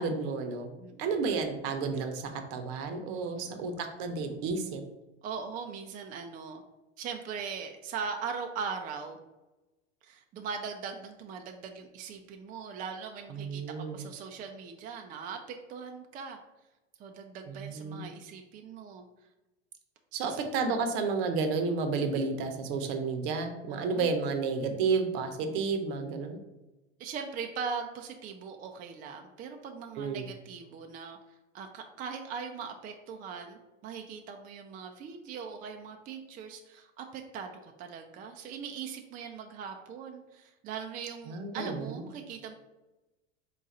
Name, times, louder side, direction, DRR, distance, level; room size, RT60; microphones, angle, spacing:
voice 1, 0.0-0.7 1.0-4.8 13.3-14.1 17.5-18.0 20.1-26.4 30.0-30.3 41.3-42.0, right 4 dB, 60° right, 6 dB, 0.7 m, -31 dB
voice 2, 0.8-1.1 3.3-3.7 5.2-6.6 7.0-9.2 10.0-16.4 17.0-19.0 20.2-20.4 23.7-24.1 27.0-31.2 31.5-42.6, right 6 dB, 25° right, 4 dB, 0.4 m, -40 dB
3.8 x 2.5 x 4.1 m, 1.0 s
hypercardioid pair, 100°, 32 cm